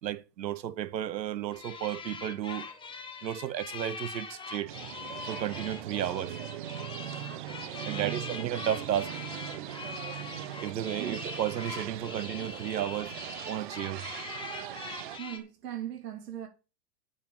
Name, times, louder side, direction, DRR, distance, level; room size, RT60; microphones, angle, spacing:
voice 1, 0.0-2.7 3.2-4.7 5.3-6.4 7.8-9.1 10.6-13.2 13.5-14.1, right 11 dB, 90° right, 1.1 m, -33 dB
sound 1, 1.5-15.4, left 5 dB, 10° left, 1.4 m, -43 dB
sound 2, 4.7-15.2, right 13 dB, 35° right, 0.4 m, -40 dB
voice 2, 7.9-8.4 11.0-11.2 15.2-16.5, right 11 dB, 70° right, 3.1 m, -39 dB
8.5 x 6.0 x 7.1 m
hypercardioid pair, 140°, 49 cm